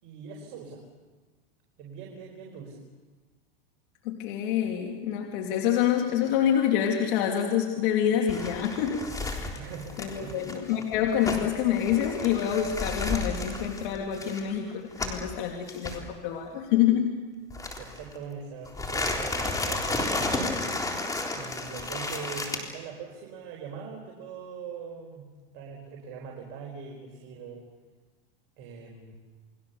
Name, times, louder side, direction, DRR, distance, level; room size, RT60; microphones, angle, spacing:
voice 1, 0.0-0.8 1.8-2.8 9.5-10.4 17.8-20.5 21.3-25.2 25.5-27.6 28.6-29.2, right 5 dB, 50° right, 0 dB, 4.8 m, -42 dB
voice 2, 4.0-9.6 10.0-17.1, left 9 dB, 60° left, 2 dB, 2.9 m, -27 dB
sound 1, 8.3-15.3 15.7-16.0 17.5-18.2 18.7-22.6, left 2 dB, 10° left, 3.7 m, -32 dB
29.5 x 22.0 x 7.0 m, 1.3 s
supercardioid pair, 135°, 30 cm